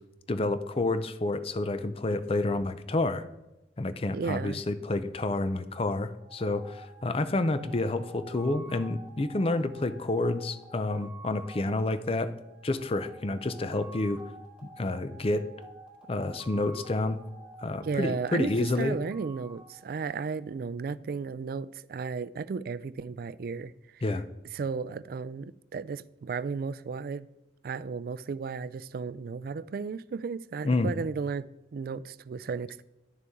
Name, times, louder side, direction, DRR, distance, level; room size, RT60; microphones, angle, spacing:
voice 1, 0.3-3.2 3.8-12.3 12.6-14.2 14.8-15.5 16.1-17.2 17.6-19.0 24.0-24.2 30.6-30.9, left 2 dB, 35° left, 0.5 m, -29 dB
voice 2, 4.1-4.6 17.8-24.0 24.5-27.3 27.6-32.8, right 5 dB, 55° right, 0.3 m, -34 dB
sound 1, 6.1-20.6, right 2 dB, 5° right, 2.2 m, -50 dB
10.5 x 6.8 x 3.6 m
head